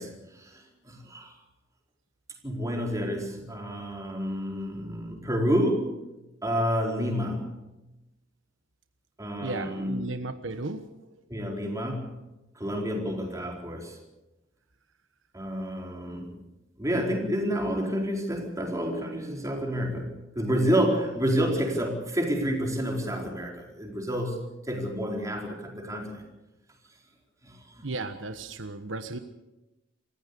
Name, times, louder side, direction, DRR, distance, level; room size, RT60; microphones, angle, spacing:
voice 1, 0.0-1.3 2.4-5.9 6.4-7.5 9.2-10.0 11.3-12.2 12.6-14.0 15.3-16.4 16.8-26.2 27.4-27.8, equal, 15° right, 0 dB, 4.5 m, -29 dB
voice 2, 9.4-10.8 27.8-29.2, right 3 dB, 80° right, 9 dB, 1.2 m, -34 dB
27.5 x 15.5 x 6.9 m, 0.99 s
head